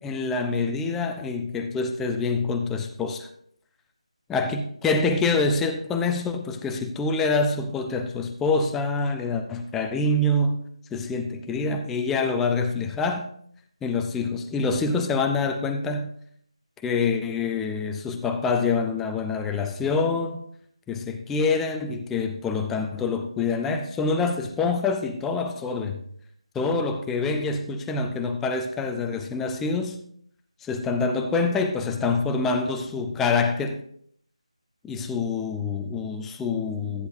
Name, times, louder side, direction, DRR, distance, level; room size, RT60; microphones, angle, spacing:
voice 1, 0.0-3.3 4.3-10.6 10.9-13.3 13.8-16.1 16.8-20.4 20.9-26.0 26.5-30.0 30.6-33.8 34.8-37.1, left 3 dB, 5° left, 0.4 m, -26 dB
13.5 x 9.6 x 2.6 m
figure-of-eight pair, 165°, 4 cm